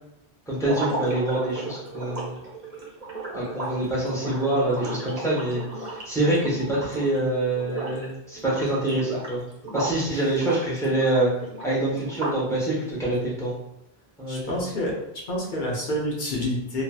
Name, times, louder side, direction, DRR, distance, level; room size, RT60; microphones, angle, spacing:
voice 1, 0.5-2.4 3.3-9.4 9.7-11.3 11.6-13.5 14.2-14.6, right 1 dB, 5° left, -7 dB, 0.8 m, -25 dB
sound 1, 0.6-7.2 7.5-8.0 8.3-10.0 10.3-12.5, right 2 dB, 40° right, 0.7 m, -34 dB
voice 2, 14.3-15.0 15.3-16.8, left 1 dB, 55° left, -3 dB, 0.7 m, -28 dB
2.7 x 2.7 x 2.2 m, 0.85 s
omnidirectional pair, 1.1 m